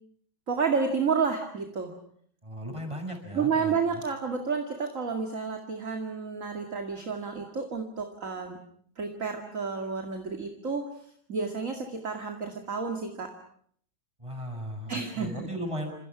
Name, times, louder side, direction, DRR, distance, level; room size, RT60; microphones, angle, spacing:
voice 1, 0.5-1.9 3.3-8.6 9.0-10.8 11.3-13.3 14.9-15.5, right 5 dB, 40° right, 4 dB, 2.5 m, -30 dB
voice 2, 2.4-4.0 14.2-16.0, equal, 15° right, 4 dB, 6.6 m, -36 dB
28.5 x 27.0 x 6.1 m, 0.63 s
omnidirectional pair, 2.2 m